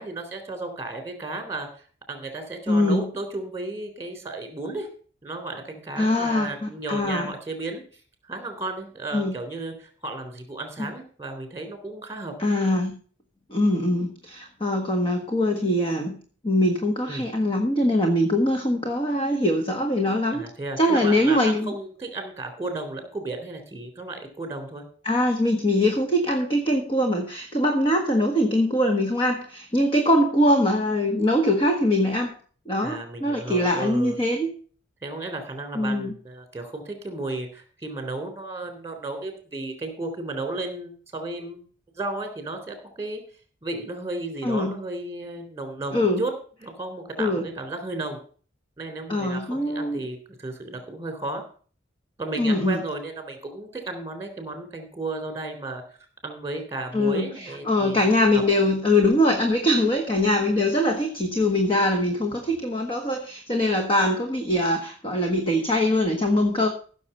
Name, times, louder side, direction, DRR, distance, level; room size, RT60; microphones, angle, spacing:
voice 1, 0.0-1.7 2.1-4.9 5.2-7.8 8.3-12.3 17.1-17.3 20.3-24.8 32.8-34.2 35.0-41.6 41.9-43.2 43.6-46.3 46.6-48.2 48.8-51.4 52.2-55.8 56.2-58.1 58.3-58.4, right 2 dB, 15° right, 6 dB, 3.5 m, -34 dB
voice 2, 2.7-3.1 6.0-7.3 9.1-9.3 10.8-10.9 12.4-13.0 13.5-16.2 16.4-20.5 20.8-21.7 25.0-32.4 32.7-34.5 35.7-36.1 44.4-44.8 45.9-46.2 47.2-47.4 49.1-50.1 52.4-52.8 56.9-66.7, left 1 dB, 25° left, 4 dB, 1.5 m, -22 dB
15.5 x 6.7 x 5.5 m, 0.42 s
head